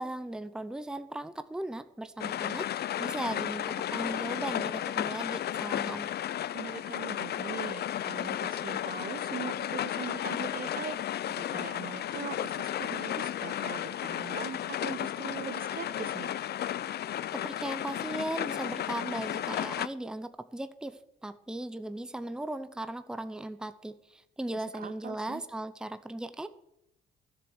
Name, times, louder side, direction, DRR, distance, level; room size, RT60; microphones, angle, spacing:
voice 1, 0.0-6.1 17.3-26.5, right 1 dB, 5° right, 11 dB, 0.7 m, -37 dB
sound 1, 2.2-19.9, left 11 dB, 55° left, 0.5 m, -33 dB
voice 2, 6.5-11.0 11.3-16.4 24.7-25.4, right 8 dB, 45° right, 13 dB, 1.2 m, -41 dB
13.0 x 7.2 x 7.9 m, 0.79 s
cardioid pair, 90°, 20 cm